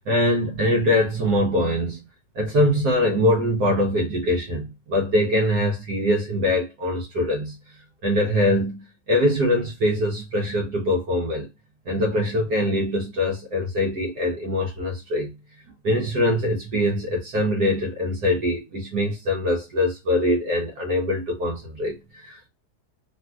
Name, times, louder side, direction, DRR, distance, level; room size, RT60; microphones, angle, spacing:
voice 1, 0.1-2.0 2.3-7.6 8.0-11.5 11.9-15.3 15.8-22.5, left 1 dB, 60° right, 1.2 m, -23 dB
3.4 x 2.6 x 2.2 m
omnidirectional pair, 2.3 m